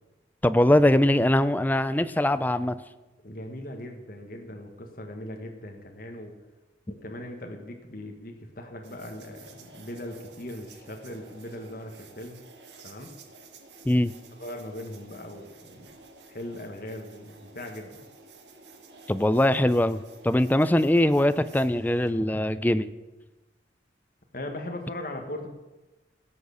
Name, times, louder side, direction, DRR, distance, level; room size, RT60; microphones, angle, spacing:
voice 1, 0.4-2.8 13.9-14.1 19.1-22.9, left 1 dB, 10° left, 14 dB, 0.4 m, -22 dB
voice 2, 3.2-6.3 6.9-12.4 12.8-13.1 14.4-15.9 16.3-18.0 24.3-25.5, left 1 dB, 50° left, 3 dB, 1.4 m, -39 dB
sound 1, 8.8-22.1, right 3 dB, 80° right, 1.7 m, -51 dB
17.0 x 6.4 x 7.0 m, 1.1 s
head